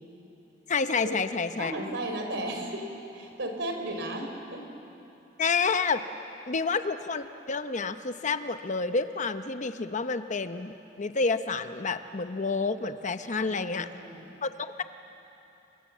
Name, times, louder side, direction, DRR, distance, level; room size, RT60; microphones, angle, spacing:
voice 1, 0.7-1.7 5.4-6.0 6.5-13.9 14.4-14.8, left 4 dB, 40° left, 10 dB, 0.8 m, -29 dB
voice 2, 1.6-2.9 3.1-4.6 13.4-14.4, right 1 dB, 70° right, 4 dB, 4.1 m, -35 dB
30.0 x 24.0 x 7.4 m, 2.9 s
head